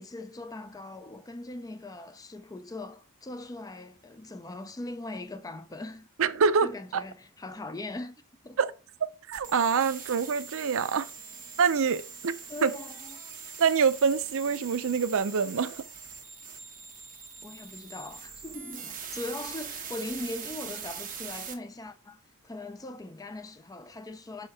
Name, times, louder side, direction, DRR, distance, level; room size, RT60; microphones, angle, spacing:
voice 1, 0.0-6.1 6.6-8.2 8.4-8.6 12.5-13.2 17.4-24.5, left 2 dB, 15° left, 0.4 m, -40 dB
voice 2, 6.2-7.0 8.6-8.7 9.3-11.1 11.6-12.3 12.6-12.7 13.6-15.8, right 6 dB, 65° right, 0.5 m, -25 dB
sound 1, 9.3-21.5, right 6 dB, 40° right, 1.3 m, -42 dB
5.6 x 4.6 x 4.7 m
head